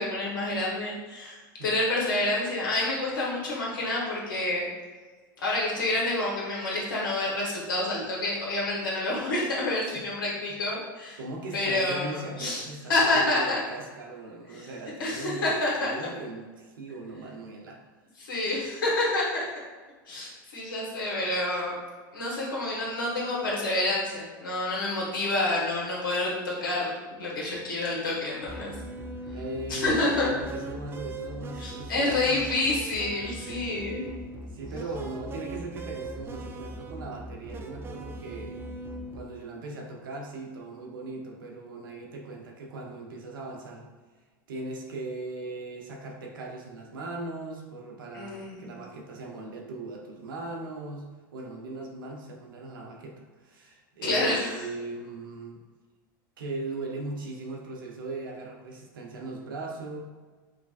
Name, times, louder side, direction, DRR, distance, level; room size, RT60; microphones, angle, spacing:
voice 1, 0.0-4.7 5.4-11.2 11.5-12.6 12.9-13.6 14.5-14.7 15.0-15.9 18.2-19.4 20.1-21.8 22.1-28.7 29.7-30.3 31.6-34.0 48.1-48.7 54.0-54.6, left 2 dB, 90° left, -4 dB, 1.1 m, -28 dB
voice 2, 11.2-17.8 29.3-32.4 34.5-38.6 39.1-43.9 44.5-55.6 56.4-60.0, right 2 dB, 80° right, 0 dB, 0.8 m, -39 dB
sound 1, 28.5-39.2, right 2 dB, 20° right, 0.3 m, -40 dB
4.9 x 2.2 x 2.4 m, 1.4 s
hypercardioid pair, 105°, 11 cm